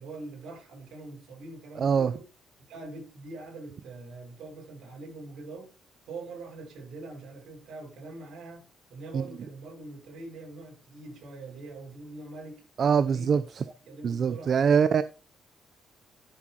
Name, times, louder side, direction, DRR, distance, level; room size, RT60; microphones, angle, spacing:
voice 1, 0.0-2.3 2.7-5.7 6.1-8.6 8.9-12.6 13.0-13.4 13.9-14.9, right 3 dB, 75° right, 5.9 m, -43 dB
voice 2, 1.8-2.1 9.1-9.2 12.8-13.6 14.0-15.0, right 6 dB, 55° right, 0.6 m, -23 dB
14.0 x 7.7 x 3.0 m
cardioid pair, 90°, 0 cm